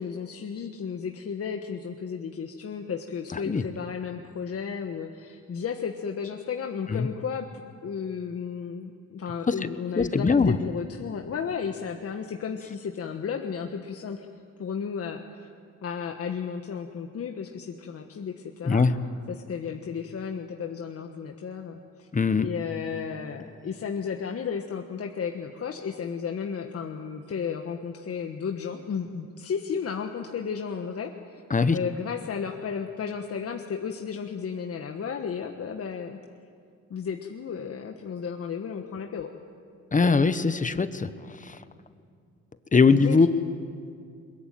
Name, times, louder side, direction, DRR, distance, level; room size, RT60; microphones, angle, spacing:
voice 1, 0.0-7.5 7.8-14.3 14.6-15.5 15.8-18.8 19.3-22.1 22.4-31.4 31.7-36.2 36.9-39.3 42.9-43.3, left 6 dB, 50° left, 3 dB, 1.5 m, -33 dB
voice 2, 10.0-10.6 18.7-18.9 22.1-22.5 31.5-31.8 39.9-41.6 42.7-43.3, left 4 dB, 25° left, 11 dB, 1.2 m, -21 dB
22.0 x 21.5 x 9.3 m, 2.3 s
cardioid pair, 90°, 30 cm